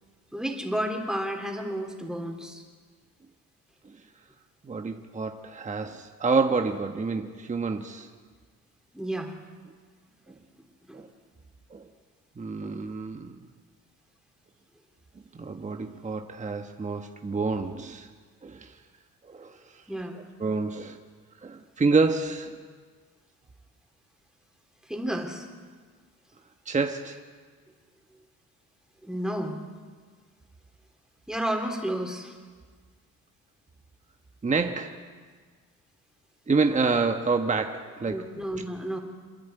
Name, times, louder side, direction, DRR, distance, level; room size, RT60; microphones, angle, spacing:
voice 1, 0.3-2.6 8.9-9.3 10.3-10.4 10.9-11.1 19.9-20.2 24.9-25.5 29.0-29.6 31.3-32.3 38.1-39.0, right 1 dB, ahead, 2 dB, 3.3 m, -31 dB
voice 2, 4.6-8.1 10.9-11.1 11.7-11.9 12.4-13.4 15.3-18.1 18.4-18.8 19.2-19.8 20.4-21.0 21.4-22.5 26.7-27.2 34.4-35.0 36.5-38.3, right 4 dB, 25° right, 5 dB, 1.2 m, -28 dB
27.0 x 10.5 x 9.3 m, 1.5 s
cardioid pair, 90°, 30 cm